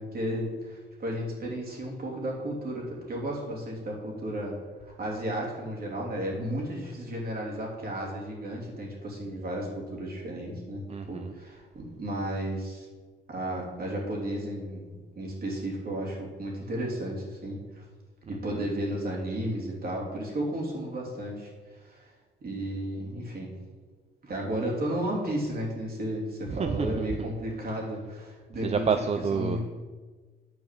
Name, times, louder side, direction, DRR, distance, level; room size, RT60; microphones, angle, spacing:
voice 1, 0.0-4.5 5.0-12.9 13.3-17.8 18.3-21.5 21.8-22.1 22.4-23.6 24.2-28.8 29.3-29.7, right 1 dB, 50° right, -2 dB, 3.3 m, -33 dB
voice 2, 10.9-11.3 18.4-18.6 26.5-27.3 28.6-29.7, right 6 dB, 35° right, 8 dB, 0.5 m, -29 dB
9.6 x 4.8 x 7.7 m, 1.4 s
cardioid pair, 90°, 20 cm